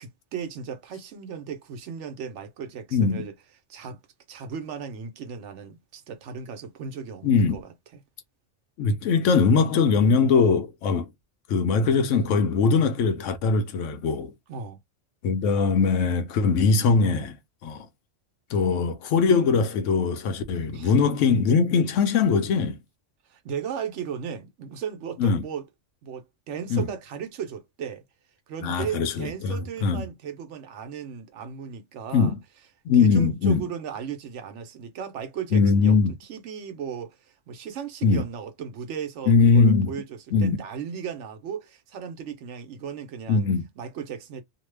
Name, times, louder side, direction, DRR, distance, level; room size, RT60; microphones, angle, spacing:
voice 1, 0.0-3.3 3.7-4.0 4.3-8.0 14.5-14.8 20.7-20.9 23.3-25.6 26.0-28.0 28.5-32.3 32.9-43.5 43.8-44.4, right 7 dB, 75° right, 1.0 m, -36 dB
voice 2, 2.9-3.3 7.2-7.6 8.8-11.1 11.5-14.3 15.2-17.4 17.6-17.9 18.5-22.8 25.2-25.4 26.7-26.9 28.6-29.6 29.8-30.0 32.1-32.4 32.8-33.6 35.5-36.1 38.0-38.2 39.3-39.9 40.3-40.6 43.3-43.7, left 5 dB, 85° left, 1.0 m, -21 dB
2.7 x 2.1 x 3.1 m
omnidirectional pair, 1.2 m